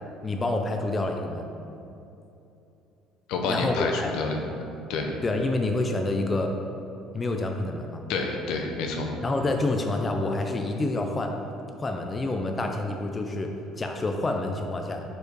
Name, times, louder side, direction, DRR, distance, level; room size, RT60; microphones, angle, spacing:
voice 1, 0.2-1.5 3.5-4.1 5.2-6.5 7.1-8.0 9.2-11.3 11.8-13.5 13.8-15.0, left 2 dB, 20° left, 3 dB, 0.4 m, -27 dB
voice 2, 3.3-4.3 4.9-5.1 8.1-9.1, left 4 dB, 75° left, 2 dB, 0.8 m, -28 dB
5.1 x 4.6 x 4.6 m, 2.8 s
cardioid pair, 135°, 0 cm